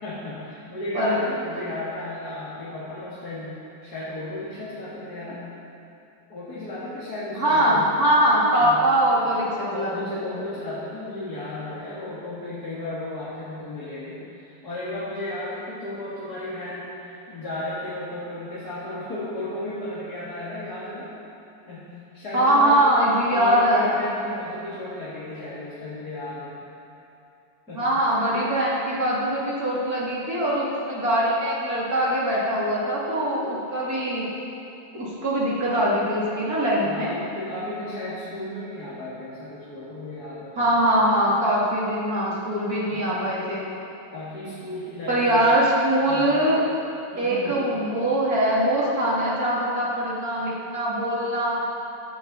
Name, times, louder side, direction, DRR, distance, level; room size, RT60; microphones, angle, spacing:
voice 1, 0.0-5.4 6.3-7.9 8.6-9.1 9.6-21.1 21.7-22.9 23.3-26.6 27.7-27.8 36.8-40.7 42.9-43.2 44.1-45.5 46.1-46.4 47.1-47.7, left 1 dB, 45° left, -9 dB, 2.4 m, -34 dB
voice 2, 7.4-10.4 22.3-24.1 27.7-34.3 34.9-37.1 40.6-43.6 45.1-46.7 47.2-51.8, right 1 dB, 40° right, -6 dB, 3.3 m, -22 dB
16.0 x 12.0 x 4.2 m, 2.8 s
omnidirectional pair, 2.4 m